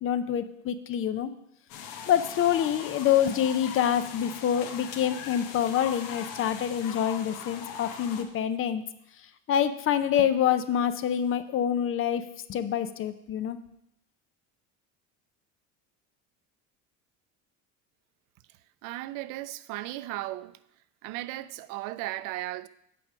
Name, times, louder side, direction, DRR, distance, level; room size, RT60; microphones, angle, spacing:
voice 1, 0.0-1.3 2.1-8.8 9.5-12.2 12.5-13.6, left 9 dB, 40° left, 0.5 m, -26 dB
sound 1, 1.7-8.2, left 7 dB, 75° left, 1.1 m, -40 dB
voice 2, 18.8-20.6 21.0-22.7, right 16 dB, 70° right, 0.5 m, -36 dB
7.7 x 5.0 x 7.1 m
cardioid pair, 130°, 34 cm